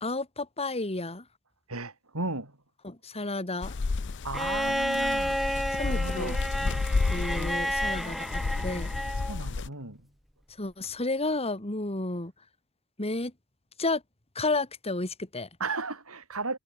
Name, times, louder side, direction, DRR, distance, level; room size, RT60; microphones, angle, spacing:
voice 1, 0.0-1.2 2.8-3.7 5.7-6.3 7.1-8.9 10.6-12.3 13.0-13.3 13.8-14.0 14.4-15.5, left 2 dB, 30° left, 2.7 m, -31 dB
voice 2, 1.7-2.6 4.2-5.4 5.8-6.4 9.1-10.0 15.6-16.6, right 3 dB, 80° right, 6.8 m, -35 dB
sound 1, 3.6-9.7, left 3 dB, 55° left, 0.6 m, -31 dB
Bowed string instrument, 4.3-9.4 10.8-10.9, equal, ahead, 1.6 m, -31 dB
head